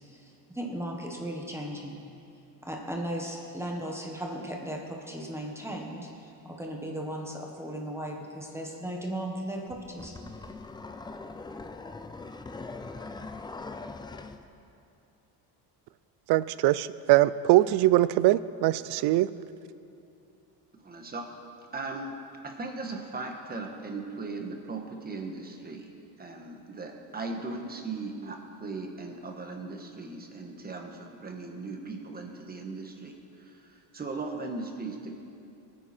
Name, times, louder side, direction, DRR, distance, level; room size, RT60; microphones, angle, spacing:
voice 1, 0.1-2.0 2.6-10.1, right 1 dB, 5° right, 0 dB, 1.4 m, -36 dB
sound 1, 9.7-14.4, left 3 dB, 10° left, 0.4 m, -41 dB
voice 2, 16.3-19.3, right 16 dB, 65° right, 17 dB, 0.5 m, -22 dB
voice 3, 20.8-21.3 21.7-22.1 22.4-25.9 26.2-35.1, right 3 dB, 20° right, 3 dB, 1.4 m, -38 dB
22.0 x 9.7 x 4.4 m, 2.7 s
cardioid pair, 140°, 43 cm